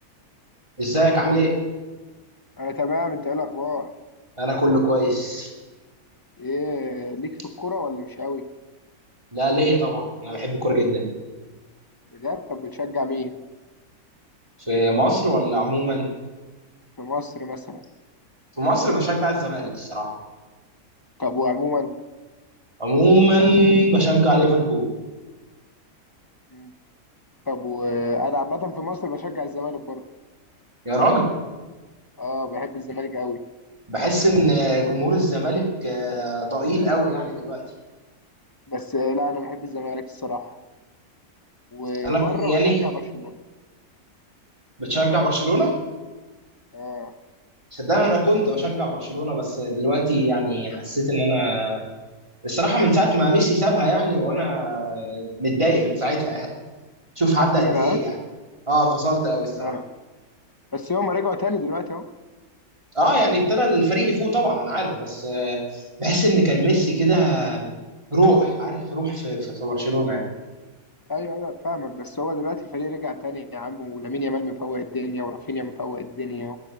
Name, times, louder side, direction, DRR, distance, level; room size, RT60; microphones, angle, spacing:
voice 1, 0.8-1.6 4.4-5.5 9.3-11.1 14.6-16.1 18.6-20.1 22.8-24.9 30.8-31.3 33.9-37.6 42.0-42.9 44.8-45.7 47.7-51.8 52.4-56.5 57.2-58.1 58.7-59.7 62.9-67.7 68.1-70.2, right 1 dB, 20° right, 0 dB, 2.7 m, -21 dB
voice 2, 2.6-3.9 6.4-8.5 12.1-13.3 17.0-17.8 21.2-21.9 26.5-26.7 27.5-30.0 32.2-33.4 38.7-40.6 41.7-43.4 46.7-47.1 57.4-58.0 59.6-59.8 60.7-62.0 71.1-76.6, left 3 dB, 20° left, 9 dB, 0.6 m, -28 dB
16.0 x 11.0 x 7.4 m, 1.2 s
omnidirectional pair, 1.6 m